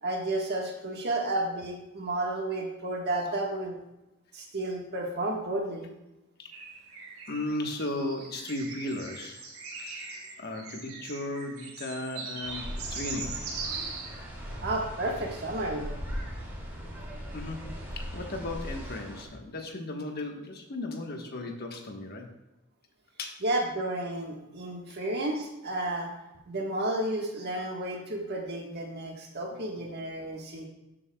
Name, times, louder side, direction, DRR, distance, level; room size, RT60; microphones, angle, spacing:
voice 1, 0.0-3.7 4.3-5.9 14.6-15.9 23.4-26.1 26.5-30.7, right 1 dB, 50° right, 0 dB, 1.5 m, -32 dB
sound 1, 6.5-14.2, right 4 dB, 75° right, 2.1 m, -41 dB
voice 2, 7.3-9.4 9.7-13.4 17.3-22.3 23.2-23.4, left 2 dB, 50° left, 3 dB, 1.3 m, -36 dB
sound 2, 12.4-19.2, equal, 10° right, 2.5 m, -39 dB
13.0 x 7.7 x 2.3 m, 0.95 s
head